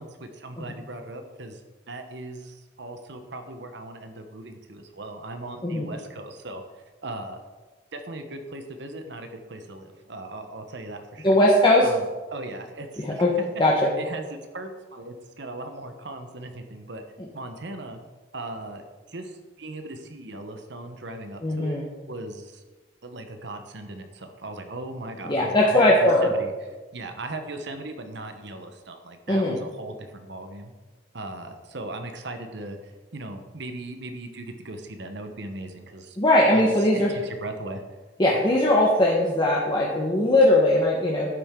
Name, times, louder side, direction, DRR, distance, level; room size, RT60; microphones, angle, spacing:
voice 1, 0.0-1.6 1.9-6.6 7.0-7.4 7.9-11.4 11.8-12.0 12.3-13.6 14.0-14.2 14.5-17.0 17.3-18.0 18.3-21.8 22.1-22.6 23.0-25.9 26.2-26.5 26.9-30.7 31.1-32.8 33.1-36.2 36.5-36.7 36.9-37.8, right 2 dB, 65° right, 6 dB, 1.0 m, -38 dB
voice 2, 11.2-11.9 13.0-13.3 13.6-13.9 21.4-21.8 25.2-26.3 29.3-29.6 36.2-37.1 38.2-41.3, left 1 dB, 25° left, -4 dB, 1.2 m, -20 dB
11.0 x 8.8 x 3.7 m, 1.3 s
head